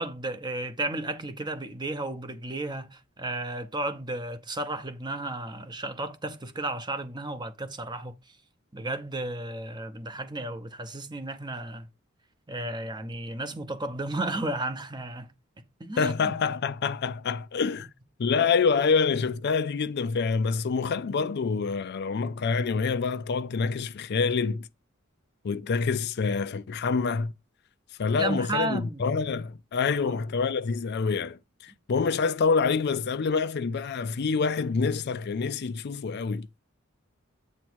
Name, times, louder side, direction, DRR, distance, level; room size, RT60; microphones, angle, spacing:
voice 1, 0.0-8.1 8.7-11.9 12.5-15.3 15.8-16.4 28.1-29.1 29.9-30.2, right 2 dB, 20° right, 0.8 m, -33 dB
voice 2, 16.0-17.9 18.2-24.7 25.4-27.3 28.0-36.5, left 5 dB, 55° left, 0.4 m, -26 dB
8.2 x 3.0 x 6.1 m
head